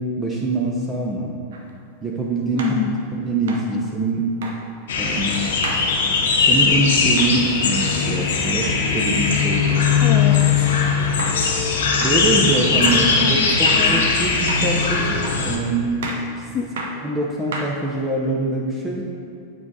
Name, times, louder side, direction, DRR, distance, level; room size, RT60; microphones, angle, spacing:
voice 1, 0.0-1.3 2.0-2.8 3.1-4.3 5.0-5.6 6.4-9.8 12.0-16.0 17.0-19.0, right 2 dB, 15° right, -3 dB, 0.8 m, -24 dB
sound 1, 1.5-1.6 2.6-2.8 3.5-3.7 4.4-4.6 5.6-5.9 7.2-7.4 10.4-10.6 11.2-11.4 12.0-12.2 12.8-13.1 13.6-13.9 14.5-14.7 15.2-15.5 16.0-16.3 16.8-17.0 17.5-18.0, right 3 dB, 60° right, 0.8 m, -31 dB
voice 2, 2.5-3.0 10.0-10.7 13.0-14.1 16.5-16.9, left 7 dB, 30° left, 5 dB, 0.4 m, -27 dB
sound 2, 4.9-15.6, left 5 dB, 60° left, 0.9 m, -19 dB
9.4 x 4.6 x 4.0 m, 2.5 s
figure-of-eight pair, 90°, 0 cm